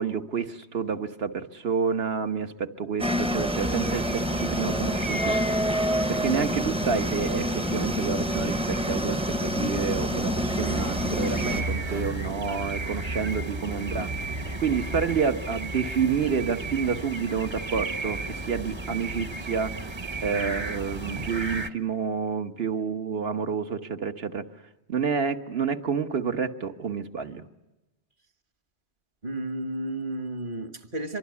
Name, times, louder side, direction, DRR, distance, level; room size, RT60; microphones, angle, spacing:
voice 1, 0.0-5.3 6.1-14.1 14.6-19.9 20.2-24.5 24.9-27.4, right 6 dB, 65° right, 1.5 m, -29 dB
sound 1, 3.0-11.6, equal, 5° right, 0.7 m, -27 dB
sound 2, 3.5-21.7, right 2 dB, 25° right, 1.0 m, -35 dB
sound 3, 9.5-15.2, right 1 dB, 85° right, 4.1 m, -36 dB
voice 2, 29.2-31.2, right 1 dB, 50° right, 1.7 m, -32 dB
25.0 x 24.5 x 9.6 m
omnidirectional pair, 1.1 m